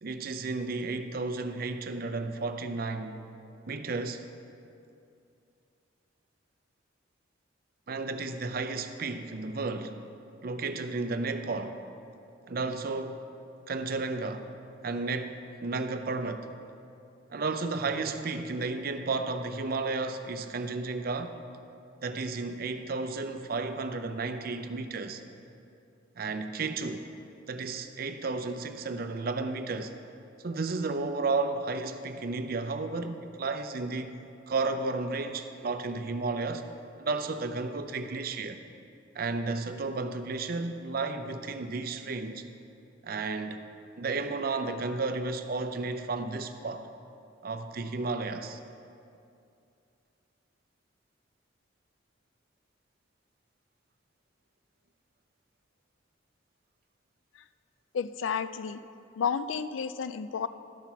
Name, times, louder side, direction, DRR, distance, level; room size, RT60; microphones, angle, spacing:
voice 1, 0.0-3.2 3.7-4.2 7.9-10.0 10.4-11.8 12.5-13.3 13.7-14.5 14.8-16.5 17.3-21.4 22.0-25.2 26.2-27.0 27.5-29.9 30.4-34.2 34.5-36.7 37.0-38.6 39.1-42.4 43.0-43.6 44.0-46.9 47.4-48.6, right 3 dB, 50° right, 0.6 m, -33 dB
voice 2, 57.9-58.8 59.2-60.5, left 6 dB, 85° left, 0.4 m, -31 dB
12.5 x 5.8 x 5.9 m
head